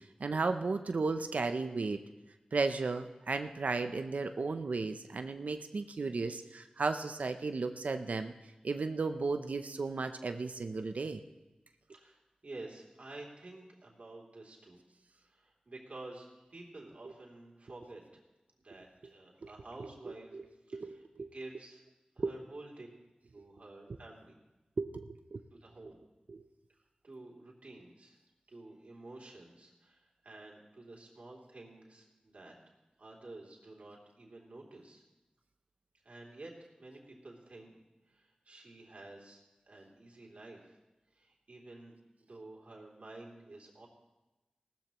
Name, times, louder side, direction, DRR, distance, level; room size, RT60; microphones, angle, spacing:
voice 1, 0.0-2.0 2.5-8.3 8.6-11.2 20.3-20.4 20.7-21.3 22.2-22.3 24.8-25.4 26.3-26.4, right 3 dB, 85° right, 7 dB, 0.6 m, -34 dB
voice 2, 11.9-14.8 15.1-18.2 18.6-20.4 20.6-21.8 22.1-22.9 23.3-24.3 25.5-26.0 26.7-28.2 28.5-32.6 33.0-35.0 36.0-37.8 38.1-39.4 39.7-40.8 41.1-42.0 42.3-43.9, right 2 dB, 65° right, -2 dB, 3.0 m, -51 dB
18.0 x 13.5 x 3.0 m, 1.0 s
wide cardioid pair, 70°, 2 cm